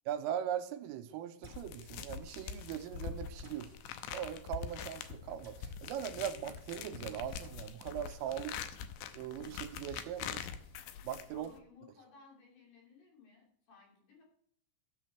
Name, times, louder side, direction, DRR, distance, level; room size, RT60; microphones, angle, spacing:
voice 1, 0.1-3.7 4.1-8.6 9.1-10.5 11.0-11.5, right 10 dB, 85° right, 9 dB, 3.2 m, -40 dB
sound 1, 1.4-11.6, left 7 dB, 80° left, 2.7 m, -44 dB
sound 2, 1.4-1.7 3.4-3.6 5.4-5.6 7.4-7.6 9.4-9.5 11.4-11.5, right 1 dB, 5° right, 3.8 m, -57 dB
voice 2, 11.3-14.2, left 4 dB, 55° left, -1 dB, 4.5 m, -59 dB
13.5 x 6.5 x 4.5 m, 0.67 s
omnidirectional pair, 5.9 m